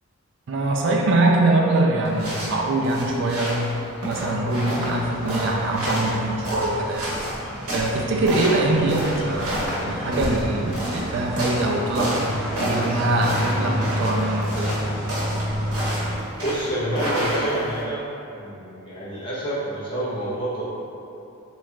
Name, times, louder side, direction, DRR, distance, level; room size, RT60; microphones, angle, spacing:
voice 1, 0.5-3.6 4.0-7.2 7.7-12.2 12.6-14.8, right 2 dB, 55° right, -1 dB, 0.4 m, -23 dB
sound 1, 2.0-17.8, equal, 75° right, 0.9 m, -30 dB
sound 2, 4.9-16.2, equal, 5° right, 0.9 m, -31 dB
voice 2, 16.4-18.0 18.3-20.6, right 1 dB, 25° left, -10 dB, 0.7 m, -27 dB
3.0 x 2.4 x 3.3 m, 2.7 s
head